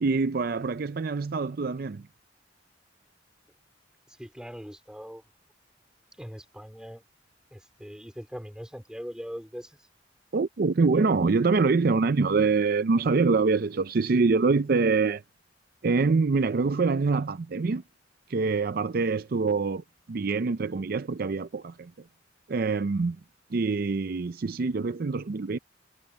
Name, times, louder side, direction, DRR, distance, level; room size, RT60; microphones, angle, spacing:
voice 1, 0.0-2.1 10.3-15.2 15.8-17.8 18.3-21.9 22.5-23.2 23.5-25.6, right 4 dB, 55° right, 0.5 m, -25 dB
voice 2, 4.1-5.2 6.2-7.0 7.5-9.8, equal, 5° right, 4.2 m, -41 dB
head